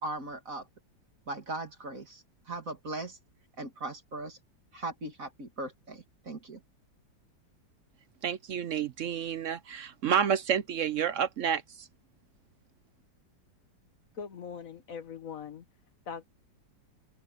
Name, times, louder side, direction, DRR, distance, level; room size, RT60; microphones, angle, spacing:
voice 1, 0.0-0.7 1.3-3.2 3.6-4.4 4.7-6.6, right 2 dB, 45° right, 2.7 m, -39 dB
voice 2, 8.2-11.9, right 8 dB, 65° right, 0.8 m, -29 dB
voice 3, 14.1-15.6 16.1-16.2, left 6 dB, 50° left, 1.6 m, -41 dB
omnidirectional pair, 2.0 m